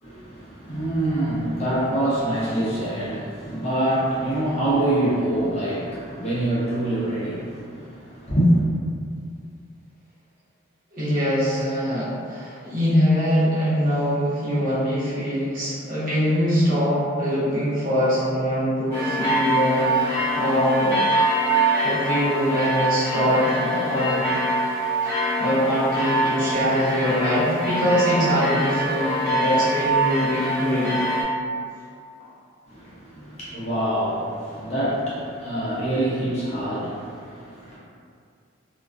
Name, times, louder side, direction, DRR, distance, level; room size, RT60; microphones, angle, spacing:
voice 1, 0.0-8.6 32.7-37.8, right 1 dB, 30° left, -10 dB, 0.6 m, -25 dB
voice 2, 10.9-21.0 21.8-24.3 25.0-31.1, equal, 40° right, -11 dB, 0.8 m, -23 dB
sound 1, 18.9-31.2, right 1 dB, 15° left, 0.9 m, -24 dB
2.3 x 2.1 x 2.4 m, 2.3 s
head